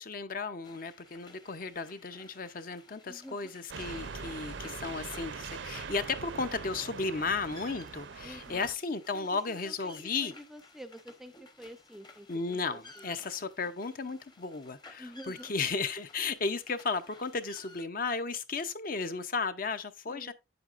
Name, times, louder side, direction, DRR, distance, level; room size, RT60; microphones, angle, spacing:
voice 1, 0.0-10.3 12.3-20.3, left 4 dB, 45° left, 0.6 m, -34 dB
sound 1, 0.6-17.8, left 2 dB, 20° left, 0.8 m, -56 dB
voice 2, 3.1-3.5 8.2-8.7 9.1-13.1 15.0-15.5 20.1-20.3, equal, ahead, 0.5 m, -49 dB
sound 2, 3.7-8.8, right 5 dB, 60° right, 0.6 m, -42 dB
8.2 x 7.9 x 2.5 m
head